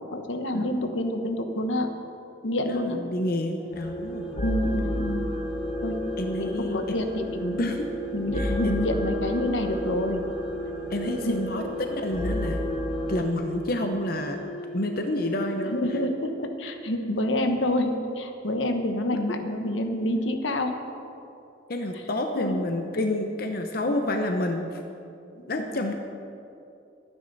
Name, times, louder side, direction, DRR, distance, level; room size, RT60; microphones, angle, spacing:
voice 1, 0.1-1.9 2.4-3.0 4.4-5.3 5.8-6.0 6.4-7.6 8.1-10.2 11.0-11.4 15.7-20.7 21.9-22.0 22.3-22.6 23.8-23.9 25.6-25.9, left 1 dB, 80° left, 5 dB, 1.2 m, -28 dB
voice 2, 2.6-4.3 6.2-6.8 7.6-7.9 8.3-8.8 10.9-12.6 13.1-14.4 14.7-15.8 16.6-16.7 21.7-24.8 25.5-25.9, left 1 dB, 50° left, 4 dB, 0.8 m, -29 dB
sound 1, 3.6-16.3, right 1 dB, 5° right, 1.8 m, -38 dB
sound 2, 3.7-13.2, left 1 dB, 30° left, 1.4 m, -32 dB
23.5 x 9.7 x 4.1 m, 2.7 s
head